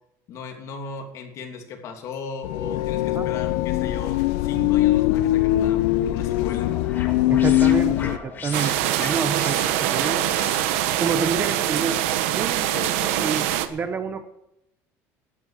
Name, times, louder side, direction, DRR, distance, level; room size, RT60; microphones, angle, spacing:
voice 1, 0.3-6.9 12.7-13.6, left 4 dB, 50° left, 3 dB, 2.8 m, -37 dB
sound 1, 2.4-8.2, left 15 dB, 85° left, 0.7 m, -21 dB
sound 2, 6.0-11.2, left 5 dB, 30° left, 2.2 m, -38 dB
voice 2, 7.3-10.3 11.0-12.0 12.4-12.7 13.1-14.3, right 5 dB, 25° right, 10 dB, 1.1 m, -28 dB
sound 3, 8.5-13.7, right 13 dB, 90° right, 1.0 m, -24 dB
13.0 x 10.5 x 6.5 m, 0.81 s
cardioid pair, 140°, 7 cm